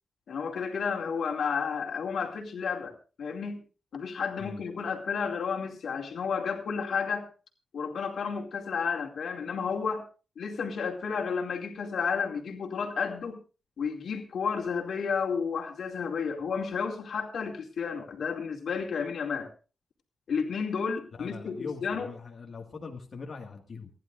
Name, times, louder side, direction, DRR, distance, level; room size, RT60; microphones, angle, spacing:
voice 1, 0.3-3.6 3.9-7.3 7.7-10.0 10.4-13.4 13.8-19.5 20.3-22.1, left 6 dB, 80° left, 1 dB, 2.4 m, -32 dB
voice 2, 21.1-23.9, left 4 dB, 50° left, 1 dB, 1.8 m, -41 dB
28.5 x 11.0 x 2.5 m, 0.34 s
wide cardioid pair, 115°, 0 cm